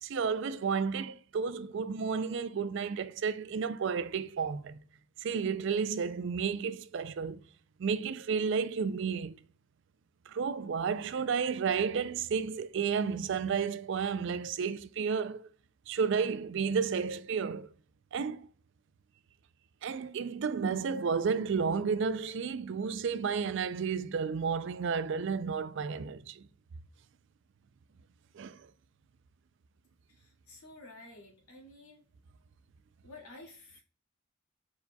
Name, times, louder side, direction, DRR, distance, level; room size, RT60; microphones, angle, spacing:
voice 1, 0.0-4.8 5.2-7.4 7.8-9.4 10.3-15.5 15.9-17.7 18.1-18.5 19.8-26.5 28.3-28.7, right 6 dB, 55° right, 0.3 m, -32 dB
voice 2, 30.1-32.0 33.0-33.8, left 2 dB, 85° left, 1.9 m, -52 dB
4.7 x 4.0 x 2.2 m
head